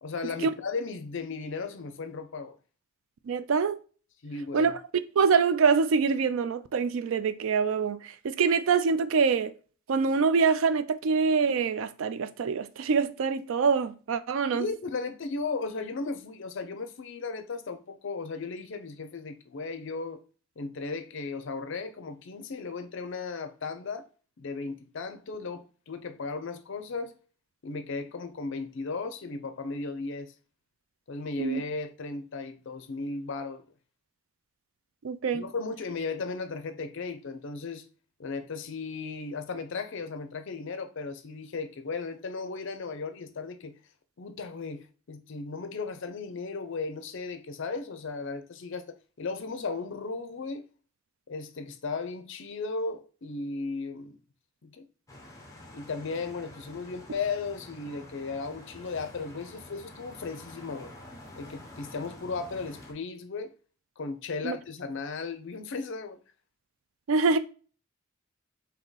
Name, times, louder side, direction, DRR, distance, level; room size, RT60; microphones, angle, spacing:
voice 1, 0.0-2.6 4.2-4.7 14.5-20.2 20.6-24.1 24.4-27.1 27.6-30.3 31.1-33.6 35.3-37.8 38.2-43.7 44.2-50.6 51.3-54.2 54.6-54.9 55.7-60.9 61.4-63.5 64.0-66.2, left 4 dB, 60° left, 0.5 m, -36 dB
voice 2, 3.3-3.8 4.5-4.8 5.2-9.5 9.9-14.7 31.4-31.6 35.0-35.4 64.4-64.6 67.1-67.4, right 5 dB, 70° right, 0.4 m, -25 dB
sound 1, 55.1-62.9, left 1 dB, 15° left, 1.0 m, -48 dB
3.6 x 2.8 x 3.9 m
head